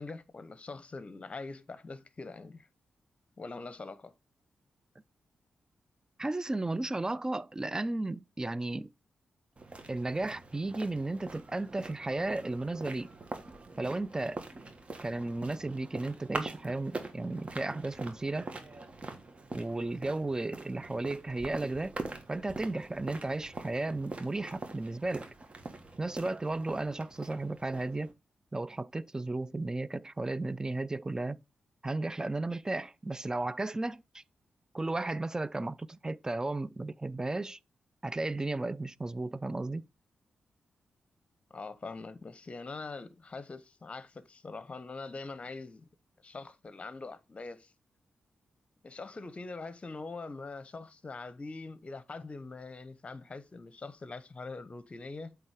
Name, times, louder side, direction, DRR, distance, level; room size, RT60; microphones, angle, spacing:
voice 1, 0.0-2.7 3.4-4.1 41.5-45.9 46.2-47.7 48.8-55.4, left 3 dB, 40° left, 0.8 m, -43 dB
voice 2, 6.2-8.9 9.9-13.1 13.8-14.4 15.0-18.5 19.5-22.0 22.3-25.3 26.0-28.1 28.5-31.4 31.8-34.2 34.7-37.6 38.0-39.9, right 2 dB, 20° right, 0.4 m, -34 dB
sound 1, 9.6-28.1, right 2 dB, 40° right, 1.4 m, -44 dB
7.9 x 3.4 x 4.8 m
supercardioid pair, 40°, 3 cm